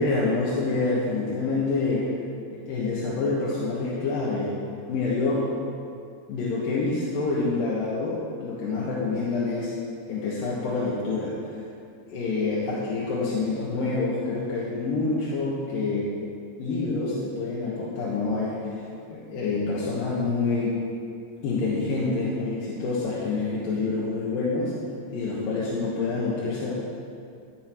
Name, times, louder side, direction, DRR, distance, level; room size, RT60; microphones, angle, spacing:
voice 1, 0.0-2.1 2.5-4.5 4.9-5.5 6.3-9.7 10.1-11.4 12.1-16.1 16.6-18.7 19.1-20.8 21.4-24.7 25.1-26.7, left 3 dB, 65° left, -7 dB, 2.8 m, -27 dB
15.5 x 7.8 x 4.6 m, 2.4 s
omnidirectional pair, 5.0 m